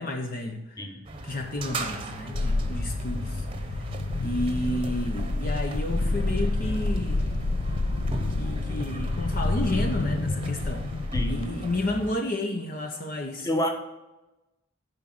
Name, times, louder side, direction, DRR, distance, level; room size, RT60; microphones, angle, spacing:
voice 1, 0.0-0.9 1.2-3.5 4.2-7.3 8.4-10.9 11.3-13.5, left 1 dB, 45° left, 3 dB, 0.8 m, -31 dB
sound 1, 1.0-12.1, right 2 dB, 25° right, 0.9 m, -38 dB
sound 2, 2.3-11.7, left 2 dB, 85° left, 0.7 m, -28 dB
voice 2, 11.1-11.5 13.4-13.7, equal, 15° left, 3 dB, 1.1 m, -28 dB
11.0 x 5.1 x 5.9 m, 1.0 s
head